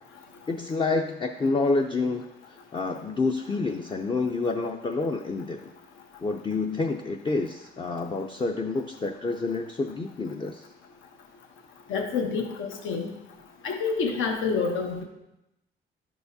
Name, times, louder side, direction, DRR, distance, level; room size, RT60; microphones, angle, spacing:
voice 1, 0.5-2.2 2.7-5.7 6.2-10.6, left 3 dB, 25° left, 4 dB, 0.4 m, -28 dB
voice 2, 11.9-13.1 13.6-15.0, left 5 dB, 80° left, 2 dB, 1.1 m, -28 dB
11.5 x 4.7 x 2.7 m, 0.90 s
cardioid pair, 90°, 20 cm